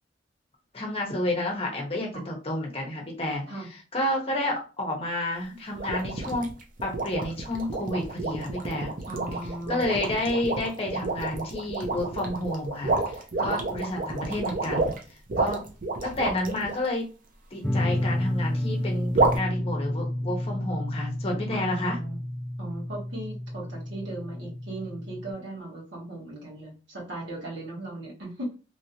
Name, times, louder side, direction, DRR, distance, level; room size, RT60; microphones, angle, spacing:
voice 1, 0.7-3.4 3.9-6.5 6.8-8.9 9.7-12.9 13.4-15.0 15.4-15.6 16.0-17.1 17.5-22.0, left 1 dB, 30° left, 0 dB, 0.9 m, -30 dB
sound 1, 5.8-16.8 19.1-19.4, right 3 dB, 50° right, 0.6 m, -29 dB
voice 2, 9.1-10.0 13.4-13.6 15.3-15.5 21.5-22.2 22.6-28.5, right 2 dB, 70° right, -4 dB, 1.6 m, -37 dB
sound 2, 17.6-25.3, left 1 dB, 5° left, 0.3 m, -30 dB
3.1 x 2.7 x 2.7 m, 0.34 s
head